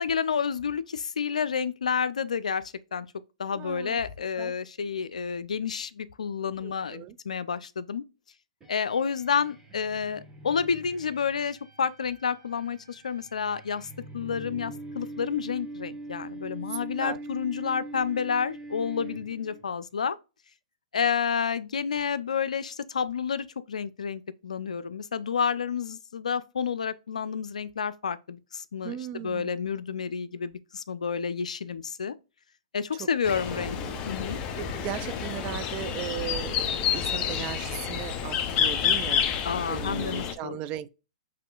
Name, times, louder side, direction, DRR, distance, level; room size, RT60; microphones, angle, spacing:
voice 1, 0.0-3.1 3.4-8.0 8.7-20.2 20.9-32.1 32.7-33.8 34.1-34.4 39.4-40.6, left 6 dB, 80° left, 0.4 m, -30 dB
voice 2, 3.5-4.0 4.4-4.5 6.6-7.2 16.7-17.2 28.8-29.5 33.0-33.1 33.5-34.0 34.2-39.2 39.7-40.9, right 12 dB, 35° right, 0.4 m, -37 dB
sound 1, 8.6-19.7, right 2 dB, 15° right, 1.3 m, -43 dB
sound 2, 33.3-40.3, left 8 dB, 30° left, 0.6 m, -29 dB
5.8 x 3.1 x 2.3 m
hypercardioid pair, 125°, 4 cm